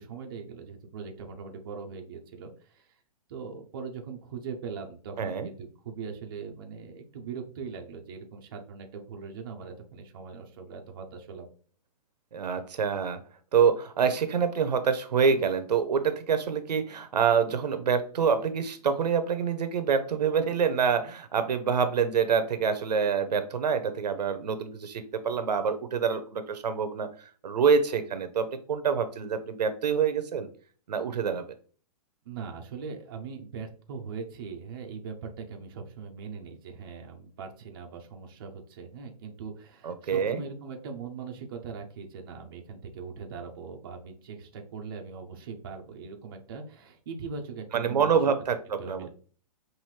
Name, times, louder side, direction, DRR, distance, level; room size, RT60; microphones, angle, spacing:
voice 1, 0.0-3.0 3.3-11.5 32.3-48.2 48.8-49.1, right 5 dB, 35° right, 2 dB, 0.6 m, -40 dB
voice 2, 5.2-5.5 12.3-13.2 13.5-27.1 27.4-30.5 30.9-31.4 39.8-40.4 47.7-49.1, right 6 dB, 80° right, 10 dB, 0.8 m, -26 dB
5.6 x 2.6 x 3.1 m, 0.43 s
hypercardioid pair, 170°, 21 cm